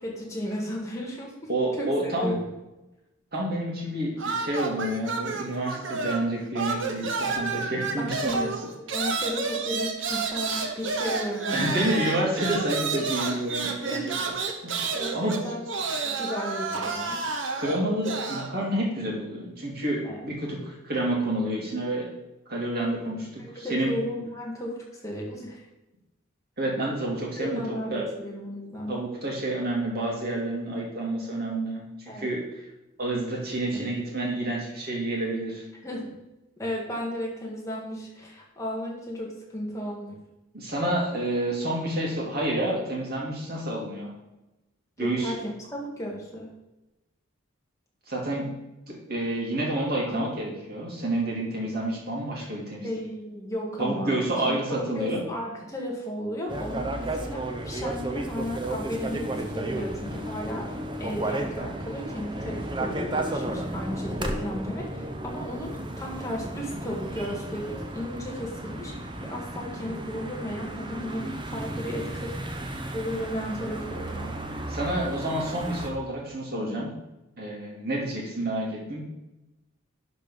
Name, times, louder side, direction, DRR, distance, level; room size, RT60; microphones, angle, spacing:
voice 1, 0.0-2.5 8.0-8.5 8.9-12.0 13.6-14.1 14.9-15.7 16.0-17.2 20.0-20.2 23.1-25.6 27.4-29.0 32.1-32.3 33.7-33.9 35.8-36.1 36.6-40.2 45.0-46.5 50.1-50.3 52.8-54.1 54.4-72.3 72.9-74.4 76.5-76.9, equal, 15° left, -2 dB, 1.7 m, -34 dB
voice 2, 1.5-2.4 3.3-8.5 11.5-14.0 14.6-15.4 17.5-22.1 22.5-23.9 26.6-28.0 28.9-31.8 32.2-32.4 33.0-35.6 40.5-44.1 45.0-45.3 48.1-48.5 48.9-52.9 53.8-55.2 74.7-76.9 77.4-79.0, right 1 dB, 45° right, -3 dB, 2.5 m, -29 dB
sound 1, 4.2-6.3 6.5-18.5, right 4 dB, 65° right, 1.1 m, -30 dB
sound 2, 56.5-75.9, right 1 dB, 20° right, 0.8 m, -33 dB
11.0 x 4.5 x 5.3 m, 0.98 s
head